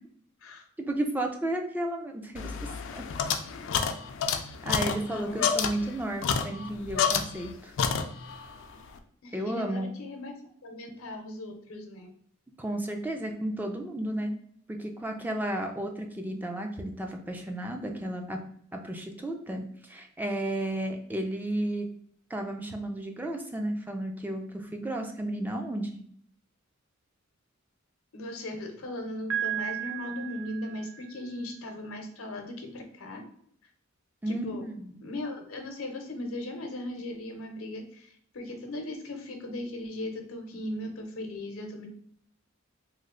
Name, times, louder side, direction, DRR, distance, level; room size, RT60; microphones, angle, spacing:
voice 1, 0.9-3.0 4.6-7.7 9.3-9.9 12.6-14.3 14.8-18.4 18.7-21.9 22.3-26.0 34.2-35.0, right 1 dB, 10° right, 3 dB, 0.3 m, -33 dB
sound 1, 2.4-7.5 7.8-8.5, left 6 dB, 65° left, 0.4 m, -29 dB
voice 2, 5.1-5.5 9.2-10.3 10.6-12.1 28.1-33.2 34.3-34.6 35.0-41.9, left 1 dB, 85° left, 4 dB, 0.7 m, -38 dB
Piano, 29.3-31.2, right 11 dB, 75° right, 0.6 m, -34 dB
3.1 x 2.0 x 3.6 m, 0.63 s
head